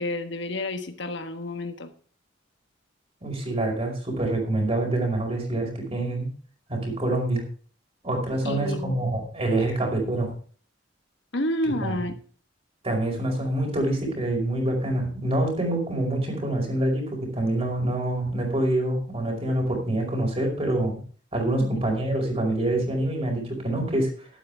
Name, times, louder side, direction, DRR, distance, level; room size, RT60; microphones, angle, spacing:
voice 1, 0.0-1.9 8.4-9.0 11.3-12.2 21.6-21.8, left 1 dB, 70° left, 7 dB, 1.4 m, -30 dB
voice 2, 3.2-6.3 6.7-7.4 8.0-10.3 11.6-12.0 12.8-21.0 21.3-24.3, right 1 dB, 35° right, 1 dB, 5.1 m, -26 dB
12.5 x 12.0 x 3.5 m, 0.42 s
head